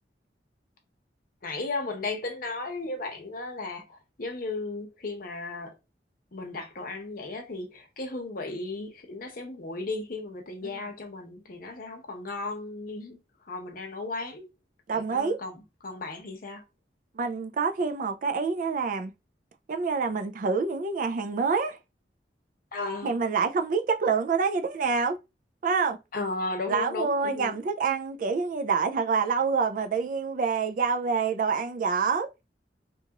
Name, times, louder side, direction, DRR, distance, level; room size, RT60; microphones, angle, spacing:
voice 1, 1.4-5.7 6.3-13.2 13.5-14.5 14.9-16.6 22.7-23.2 26.1-27.6, left 3 dB, 55° left, 0.8 m, -35 dB
voice 2, 14.9-15.4 17.1-19.1 19.7-21.8 23.0-25.2 25.6-26.0 26.7-32.3, right 5 dB, 50° right, 0.3 m, -27 dB
2.9 x 2.3 x 2.8 m
head